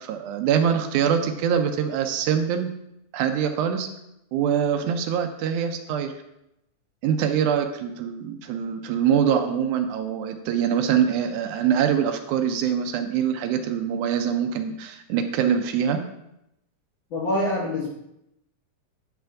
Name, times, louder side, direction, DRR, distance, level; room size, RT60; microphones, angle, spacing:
voice 1, 0.0-2.7 3.1-3.9 4.3-6.1 7.0-16.0, right 8 dB, 85° right, 7 dB, 2.0 m, -24 dB
voice 2, 17.1-17.9, left 1 dB, 65° left, -5 dB, 1.2 m, -25 dB
9.6 x 5.7 x 2.5 m, 0.83 s
omnidirectional pair, 3.5 m